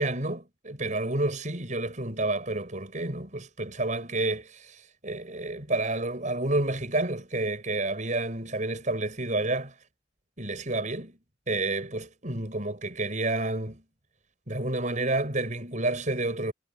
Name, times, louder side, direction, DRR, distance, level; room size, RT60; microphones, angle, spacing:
voice 1, 0.0-9.7 10.4-11.2 11.5-13.8 14.5-16.5, right 2 dB, 45° right, 6.7 m, -30 dB
head